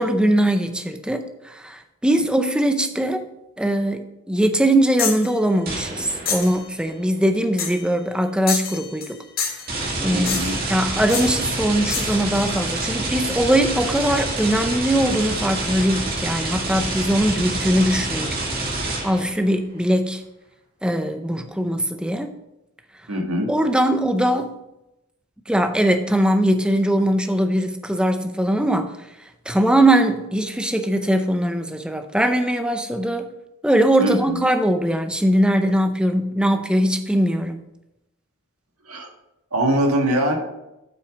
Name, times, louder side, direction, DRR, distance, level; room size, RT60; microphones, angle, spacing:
voice 1, 0.0-3.3 3.6-9.2 10.0-10.4 10.7-18.3 19.0-20.2 20.8-22.3 23.5-24.5 25.5-28.9 29.5-33.3 33.6-37.6, right 1 dB, 5° right, 7 dB, 0.5 m, -21 dB
sound 1, 5.0-5.3 6.3-6.6 7.6-7.9 8.5-9.1 9.4-9.7 10.3-10.7 11.1-11.3 11.9-12.2, left 6 dB, 45° left, 1.9 m, -27 dB
sound 2, 5.7-6.6 9.7-19.4, right 2 dB, 45° right, 1.9 m, -27 dB
voice 2, 10.1-10.6 23.1-23.5 34.0-34.4 38.9-39.1 39.5-40.4, right 1 dB, 80° right, 2 dB, 1.6 m, -22 dB
7.8 x 6.0 x 5.0 m, 0.92 s
head